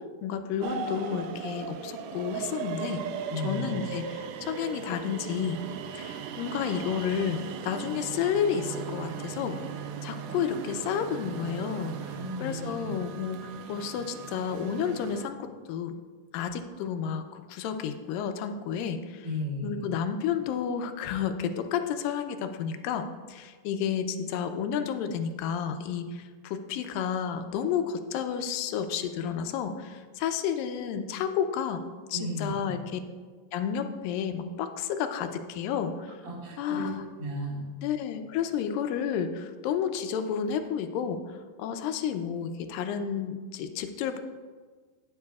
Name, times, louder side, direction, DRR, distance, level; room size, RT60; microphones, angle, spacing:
voice 1, 0.2-3.0 3.4-5.6 5.9-9.6 10.0-12.0 12.4-16.0 16.3-19.3 19.6-31.8 32.1-33.0 33.5-36.2 36.6-37.0 37.8-44.2, left 8 dB, 85° left, 7 dB, 2.4 m, -31 dB
sound 1, 0.6-15.2, right 7 dB, 80° right, 2.0 m, -38 dB
voice 2, 3.3-3.7 12.1-12.9 19.2-19.9 32.1-32.7 36.2-36.9 37.2-37.7, equal, 40° right, -3 dB, 2.0 m, -34 dB
18.0 x 7.4 x 2.4 m, 1.5 s
omnidirectional pair, 3.9 m